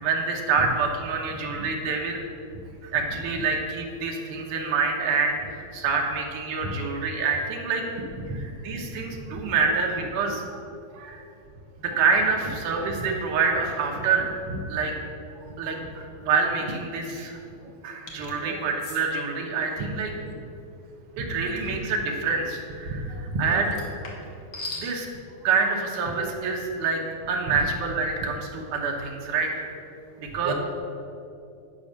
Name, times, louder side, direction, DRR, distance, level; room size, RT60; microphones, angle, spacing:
voice 1, 0.0-2.2 2.8-7.8 8.6-10.4 11.1-11.2 11.8-14.3 14.7-14.9 15.6-17.4 17.8-20.1 21.2-22.9 23.4-23.7 24.7-25.1 25.4-27.0 27.3-29.7 30.2-30.5, right 4 dB, 65° right, 0 dB, 2.2 m, -26 dB
voice 2, 9.2-9.7 10.2-10.3 10.9-11.2 11.9-12.0 14.5-14.6 15.6-15.9 17.6-17.7 18.4-18.6 19.8-19.9 21.3-21.4 21.7-21.8 22.9-23.7 27.5-27.6 30.4-30.5, right 2 dB, 90° right, 2 dB, 1.3 m, -34 dB
sound 1, 18.1-18.4 18.8-19.0 21.6-21.8 23.7-24.9, left 2 dB, 65° left, 1.4 m, -38 dB
10.5 x 5.6 x 6.5 m, 2.6 s
omnidirectional pair, 4.5 m